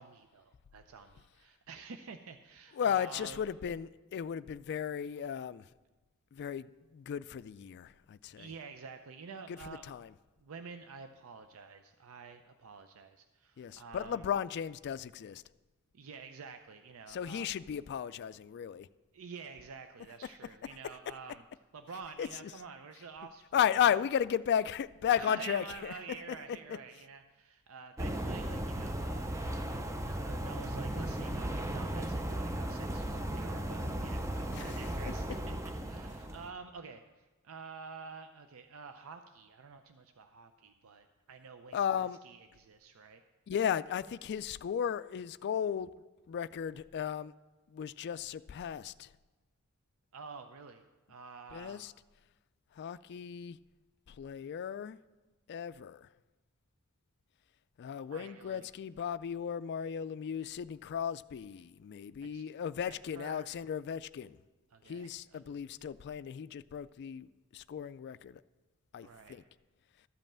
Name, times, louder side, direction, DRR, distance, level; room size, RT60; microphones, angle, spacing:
voice 1, 0.0-3.5 8.4-10.0 10.4-14.3 15.9-17.5 19.1-21.4 21.7-24.0 25.1-35.6 35.8-43.2 50.1-51.9 58.1-58.7 62.2-62.6 62.9-63.5 64.7-65.9 69.0-69.4, right 5 dB, 70° right, 0.5 m, -49 dB
voice 2, 2.8-5.6 6.3-6.7 6.9-8.5 9.5-10.1 13.6-15.4 17.1-18.9 22.2-22.3 23.5-25.9 34.5-34.6 41.7-42.2 43.5-45.9 46.3-47.3 47.7-49.1 51.5-51.9 52.8-53.6 54.2-55.0 55.5-56.1 57.8-64.4 64.9-67.3 67.5-68.4 68.9-69.4, left 8 dB, 50° left, 0.3 m, -35 dB
sound 1, 28.0-36.5, right 1 dB, 15° right, 0.5 m, -36 dB
13.0 x 5.4 x 7.3 m
head